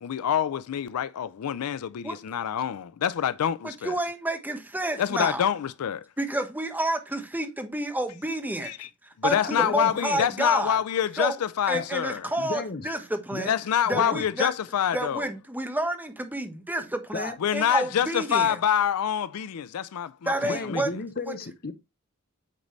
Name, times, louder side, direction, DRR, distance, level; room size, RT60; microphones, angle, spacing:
voice 1, 0.0-3.9 5.0-6.1 8.6-8.9 9.2-12.3 13.5-15.2 17.4-20.8, left 9 dB, 80° left, 0.4 m, -26 dB
voice 2, 3.6-5.5 6.2-8.7 9.0-10.8 11.2-11.4 11.7-13.6 13.9-14.5 14.9-18.6 20.2-20.9 21.3-21.4, right 1 dB, 10° right, 1.0 m, -30 dB
voice 3, 9.3-10.2 11.7-11.9 12.4-12.9 13.3-13.5 13.9-14.2 17.1-17.4 20.4-21.7, left 3 dB, 45° left, 0.8 m, -33 dB
8.3 x 4.0 x 3.1 m
head